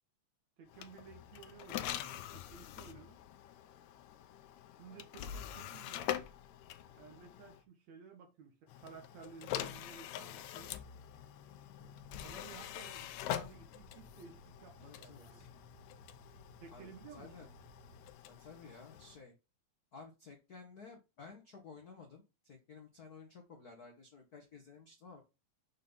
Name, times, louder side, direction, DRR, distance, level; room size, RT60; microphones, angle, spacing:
voice 1, 0.6-3.2 4.8-6.1 7.0-10.8 12.2-15.4 16.6-17.5, right 6 dB, 65° right, 2.6 m, -55 dB
sound 1, 0.7-7.6 8.7-19.2, left 11 dB, 75° left, 1.9 m, -45 dB
sound 2, 11.8-18.1, right 2 dB, 90° right, 1.0 m, -61 dB
voice 2, 14.8-15.5 16.7-17.5 18.2-19.3 19.9-25.2, left 4 dB, 60° left, 1.0 m, -54 dB
6.4 x 4.0 x 5.3 m
omnidirectional pair, 3.5 m